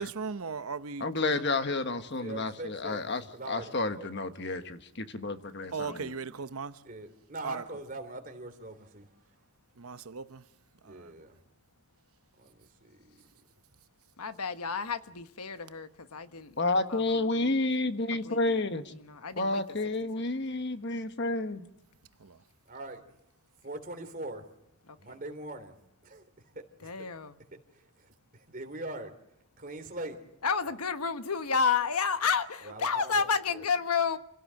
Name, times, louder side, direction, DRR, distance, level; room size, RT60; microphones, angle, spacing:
voice 1, 0.0-1.5 5.7-6.8 7.4-7.6 9.8-10.4 10.9-11.1 22.2-22.4, right 5 dB, 75° right, 0.9 m, -37 dB
voice 2, 1.0-6.1 16.6-18.9 19.4-21.7, left 2 dB, 50° left, 1.4 m, -30 dB
voice 3, 2.1-4.7 6.8-9.2 10.8-11.3 12.4-13.3 22.6-23.0 23.6-24.4 25.0-25.7 26.0-26.2 26.5-27.1 27.7-29.1 29.6-30.2 30.6-30.7 32.6-33.6, right 2 dB, 40° right, 3.4 m, -42 dB
voice 4, 5.6-6.2 14.2-16.5 16.9-17.6 18.1-18.4 19.1-19.6 26.8-27.3 30.4-34.2, left 5 dB, 90° left, 1.3 m, -31 dB
28.0 x 17.0 x 7.7 m
head